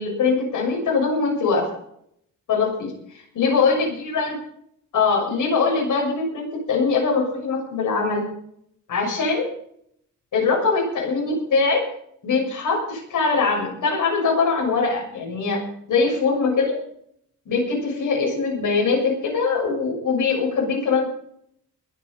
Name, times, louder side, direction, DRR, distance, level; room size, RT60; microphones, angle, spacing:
voice 1, 0.0-1.6 2.5-3.8 4.1-4.3 4.9-8.2 8.9-9.5 10.3-11.8 12.2-15.6 15.9-16.8 17.4-21.0, left 4 dB, 90° left, -2 dB, 6.7 m, -22 dB
22.5 x 9.4 x 5.5 m, 0.66 s
wide cardioid pair, 180°, 30 cm